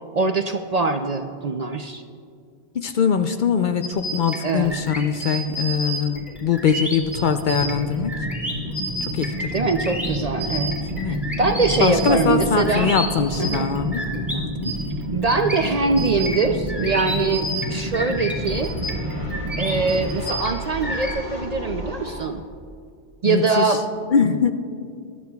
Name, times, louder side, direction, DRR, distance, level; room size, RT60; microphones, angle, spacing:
voice 1, 0.1-2.0 4.4-4.8 9.5-10.9 11.4-12.9 13.4-13.7 15.1-18.8 19.6-22.4 23.2-23.8, right 4 dB, 50° right, 5 dB, 0.5 m, -23 dB
voice 2, 2.7-8.1 9.0-9.5 11.0-11.2 11.8-14.8 23.2-23.8 24.1-24.5, left 6 dB, 55° left, 7 dB, 0.6 m, -22 dB
sound 1, 3.8-14.3 14.6-21.1, right 1 dB, ahead, 2.3 m, -31 dB
sound 2, 6.9-22.3, equal, 70° left, 2.8 m, -36 dB
sound 3, 7.2-20.2, equal, 80° right, 1.8 m, -30 dB
21.5 x 11.5 x 2.3 m, 2.3 s
omnidirectional pair, 1.1 m